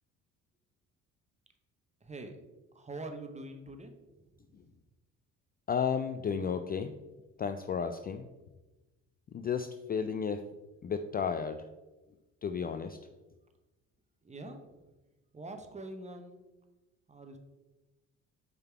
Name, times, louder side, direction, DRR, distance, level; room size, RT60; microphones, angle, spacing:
voice 1, 2.0-2.3 2.7-3.9 14.2-14.6 15.3-16.4 17.1-17.4, right 2 dB, 20° right, 6 dB, 0.9 m, -44 dB
voice 2, 5.7-6.9 7.4-8.3 9.3-10.4 10.8-11.6 12.4-13.0, left 6 dB, 25° left, 8 dB, 0.3 m, -33 dB
5.4 x 3.8 x 4.5 m, 1.1 s
supercardioid pair, 65°, 35 cm